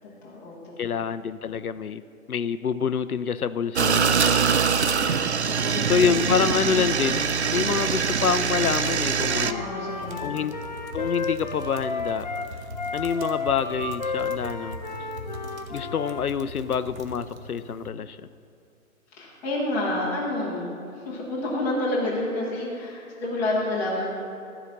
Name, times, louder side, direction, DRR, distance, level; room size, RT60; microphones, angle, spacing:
voice 1, 0.0-0.7 5.3-7.0 9.4-10.5 19.1-20.7 21.0-24.1, left 2 dB, 5° left, -7 dB, 0.7 m, -29 dB
voice 2, 0.8-2.0 2.3-4.1 5.8-9.8 10.2-10.6 10.9-12.3 12.9-14.8 15.7-18.2, left 7 dB, 85° left, 13 dB, 0.5 m, -27 dB
sound 1, 3.8-9.5, right 6 dB, 55° right, 0.5 m, -23 dB
Wind instrument woodwind instrument, 9.2-16.3, left 4 dB, 35° left, 0.4 m, -33 dB
sound 2, 9.9-17.9, equal, 70° right, 1.1 m, -40 dB
13.0 x 4.9 x 6.9 m, 2.6 s
figure-of-eight pair, 135°, 43 cm